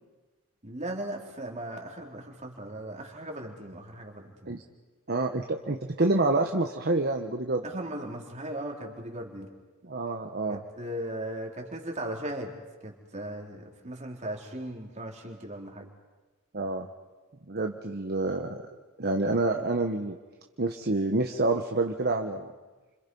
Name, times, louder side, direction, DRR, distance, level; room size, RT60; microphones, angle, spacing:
voice 1, 0.6-4.5 7.6-9.5 10.5-12.5 12.8-15.9, right 1 dB, 35° right, 1 dB, 3.8 m, -37 dB
voice 2, 5.1-7.6 9.8-10.6 16.5-16.9 17.5-18.6 19.0-20.2 20.6-22.5, right 2 dB, 50° right, 4 dB, 1.3 m, -27 dB
29.5 x 27.0 x 5.6 m, 1.2 s
head